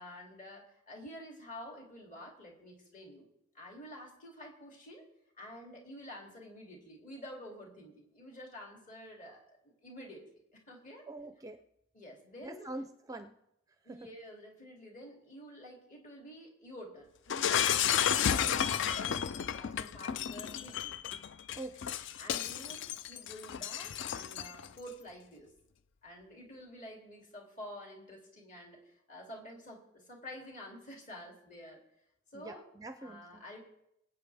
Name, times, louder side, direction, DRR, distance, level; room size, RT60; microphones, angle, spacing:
voice 1, 0.0-3.3 3.5-5.0 5.4-10.2 10.5-11.0 11.9-12.7 13.8-21.0 22.2-25.5 26.0-31.8 32.3-32.6 33.0-33.6, equal, 40° left, 0 dB, 2.7 m, -49 dB
voice 2, 11.1-11.6 12.4-13.3 21.6-21.7 32.3-33.4, right 2 dB, 15° right, 8 dB, 0.5 m, -44 dB
Shatter, 17.3-24.7, left 9 dB, 55° left, 0.4 m, -32 dB
23.0 x 8.3 x 3.4 m, 0.80 s
head